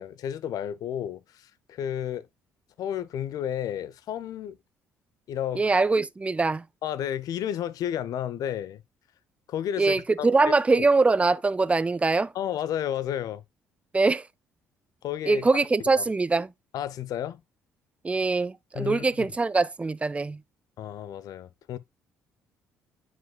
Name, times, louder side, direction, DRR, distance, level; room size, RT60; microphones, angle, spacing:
voice 1, 0.0-2.3 2.8-4.6 5.3-5.6 6.8-8.8 9.5-10.9 12.3-13.4 15.0-15.5 16.0-16.1 16.7-17.4 18.7-19.3 20.8-21.8, left 10 dB, 60° left, 0.6 m, -32 dB
voice 2, 5.6-6.6 9.8-12.3 13.9-14.3 15.3-16.5 18.0-20.4, right 3 dB, 20° right, 0.4 m, -23 dB
9.2 x 5.0 x 2.2 m
hypercardioid pair, 55°, 7 cm